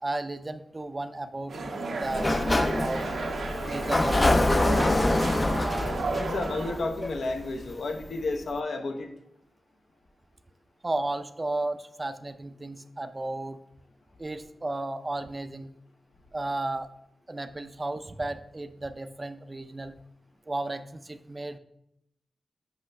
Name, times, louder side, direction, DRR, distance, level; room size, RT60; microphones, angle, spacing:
voice 1, 0.0-1.6 2.0-3.1 3.7-4.7 10.8-13.6 14.2-15.7 16.3-16.9 17.3-19.9 20.5-21.6, right 2 dB, 30° right, 11 dB, 0.4 m, -34 dB
sound 1, 1.5-6.7, right 3 dB, 85° right, 0.9 m, -33 dB
Sliding door, 2.0-7.7, left 2 dB, 25° left, 0.4 m, -26 dB
voice 2, 6.2-9.1, left 2 dB, 80° left, 5 dB, 0.8 m, -31 dB
8.0 x 5.1 x 3.2 m, 0.78 s
wide cardioid pair, 80°, 0 cm